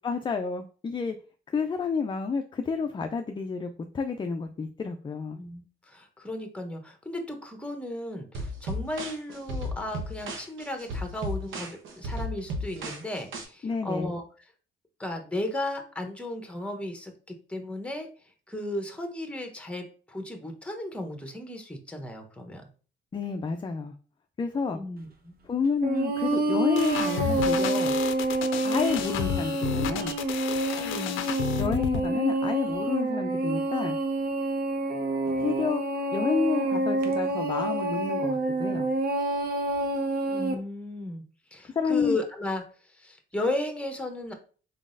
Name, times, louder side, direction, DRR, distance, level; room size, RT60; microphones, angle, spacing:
voice 1, 0.0-1.2 1.5-5.4 13.6-14.1 23.1-23.9 24.4-24.8 25.4-28.0 28.6-30.1 31.6-34.0 35.4-35.8 36.1-38.9 41.7-42.2, left 5 dB, 25° left, 6 dB, 0.4 m, -30 dB
voice 2, 5.4-14.2 15.0-18.1 18.5-22.6 24.7-25.3 30.8-31.3 40.3-41.2 41.5-42.6 42.9-44.3, left 1 dB, 5° left, 4 dB, 0.9 m, -35 dB
sound 1, 8.3-13.4, equal, 80° right, 0.9 m, -34 dB
sound 2, 25.8-40.5, right 2 dB, 50° right, 0.8 m, -28 dB
sound 3, 26.8-32.1, left 9 dB, 90° left, 0.4 m, -32 dB
4.0 x 3.7 x 2.5 m, 0.39 s
cardioid pair, 90°, 20 cm